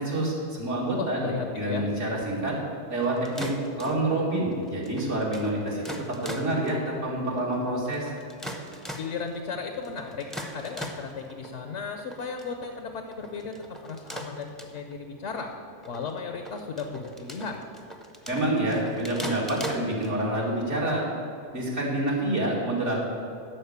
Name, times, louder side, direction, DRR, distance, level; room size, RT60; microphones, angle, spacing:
voice 1, 0.0-2.5 2.9-3.5 3.8-5.8 6.2-8.1 18.3-21.0 21.5-23.0, right 1 dB, 70° right, -4 dB, 2.7 m, -27 dB
voice 2, 1.0-1.9 9.0-10.3 10.5-15.5 15.9-17.6, left 5 dB, 75° left, 5 dB, 1.1 m, -35 dB
sound 1, 2.9-20.4, equal, ahead, 0.7 m, -41 dB
12.5 x 5.3 x 8.1 m, 2.4 s
omnidirectional pair, 1.3 m